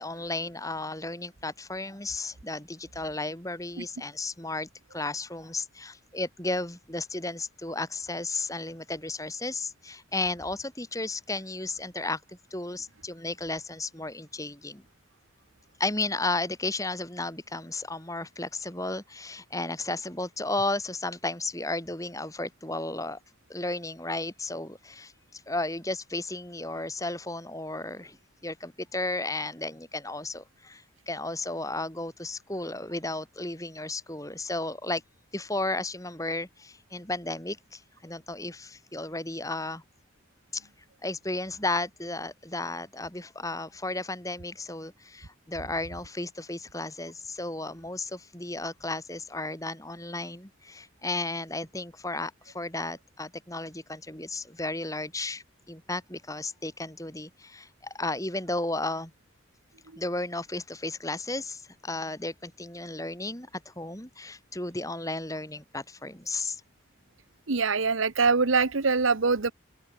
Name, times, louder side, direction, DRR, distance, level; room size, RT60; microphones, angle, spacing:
voice 1, 0.0-14.8 15.8-23.2 23.5-28.2 28.4-35.0 35.3-39.8 40.5-40.7 41.0-59.1 60.0-66.6, left 2 dB, 15° left, 4.5 m, -34 dB
voice 2, 67.5-69.5, right 4 dB, 85° right, 1.1 m, -23 dB
open air
head